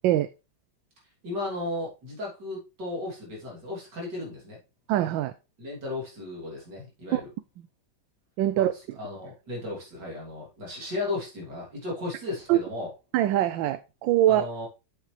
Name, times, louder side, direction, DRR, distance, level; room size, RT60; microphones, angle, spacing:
voice 1, 1.2-4.6 5.6-7.3 8.5-12.9 14.3-14.7, left 2 dB, 65° right, -3 dB, 3.7 m, -35 dB
voice 2, 4.9-5.3 7.1-7.2 8.4-8.7 12.5-12.6 13.1-14.4, right 13 dB, 85° right, 12 dB, 1.3 m, -23 dB
7.9 x 6.6 x 3.3 m, 0.29 s
omnidirectional pair, 2.0 m